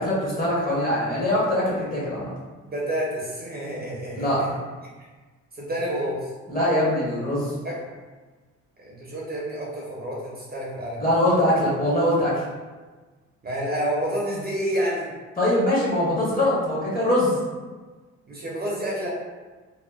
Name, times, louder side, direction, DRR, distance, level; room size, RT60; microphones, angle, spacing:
voice 1, 0.0-2.3 4.1-4.4 6.5-7.5 11.0-12.4 15.4-17.3, left 1 dB, 30° left, -6 dB, 1.0 m, -22 dB
voice 2, 2.6-4.5 5.5-6.3 7.6-7.8 8.8-11.0 13.4-15.1 18.3-19.1, equal, 30° right, -4 dB, 0.5 m, -29 dB
2.7 x 2.0 x 2.3 m, 1.3 s
cardioid pair, 90°, 30 cm